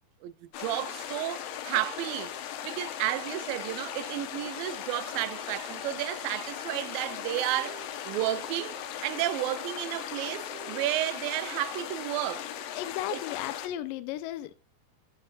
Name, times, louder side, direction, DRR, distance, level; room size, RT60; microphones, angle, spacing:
voice 1, 0.2-2.3 2.6-12.5 13.1-13.2, right 14 dB, 75° right, 2.3 m, -32 dB
sound 1, 0.5-13.7, left 10 dB, 70° left, 2.5 m, -38 dB
Wind instrument woodwind instrument, 5.9-12.7, right 7 dB, 45° right, 2.2 m, -54 dB
voice 2, 12.7-14.5, left 13 dB, 85° left, 2.0 m, -35 dB
11.5 x 11.0 x 2.4 m
omnidirectional pair, 4.7 m